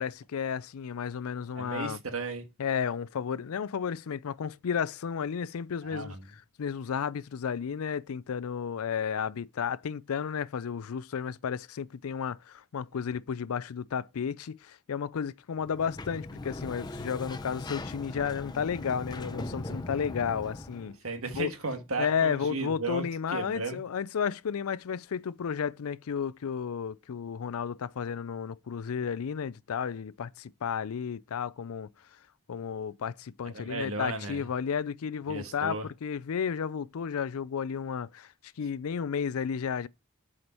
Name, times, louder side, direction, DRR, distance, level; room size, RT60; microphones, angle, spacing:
voice 1, 0.0-2.0 2.6-6.2 6.6-21.0 21.3-21.5 22.0-31.9 32.5-38.3 38.6-39.9, left 7 dB, 80° left, 0.4 m, -32 dB
voice 2, 1.5-2.4 5.8-6.2 20.8-23.8 33.4-34.5 35.3-35.9, right 3 dB, 75° right, 1.6 m, -35 dB
Sliding door, 15.6-20.9, left 2 dB, 20° left, 0.6 m, -39 dB
8.1 x 5.1 x 4.4 m
head